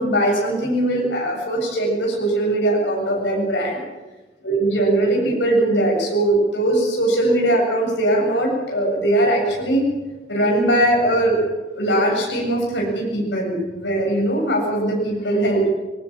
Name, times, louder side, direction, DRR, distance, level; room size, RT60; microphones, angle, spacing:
voice 1, 0.0-3.8 4.4-9.9 10.3-15.7, right 1 dB, 80° left, 0 dB, 7.7 m, -20 dB
21.0 x 19.5 x 7.4 m, 1.1 s
head